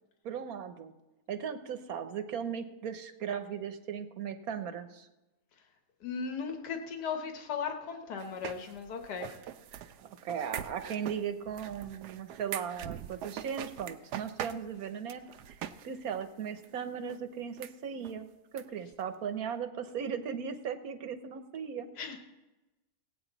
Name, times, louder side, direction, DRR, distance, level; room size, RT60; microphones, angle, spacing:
voice 1, 0.2-0.9 1.3-5.1 10.0-18.3 18.5-21.9, right 7 dB, 65° right, 9 dB, 1.3 m, -37 dB
voice 2, 6.0-9.3 22.0-22.2, left 6 dB, 90° left, 5 dB, 1.7 m, -37 dB
sound 1, 8.2-15.9 16.1-16.2 16.6-16.7 17.1-17.2 17.6-17.7 18.0-18.1 18.6-18.7 18.9-19.0, right 10 dB, 85° right, 1.2 m, -42 dB
18.0 x 8.6 x 4.0 m, 1.0 s
omnidirectional pair, 1.7 m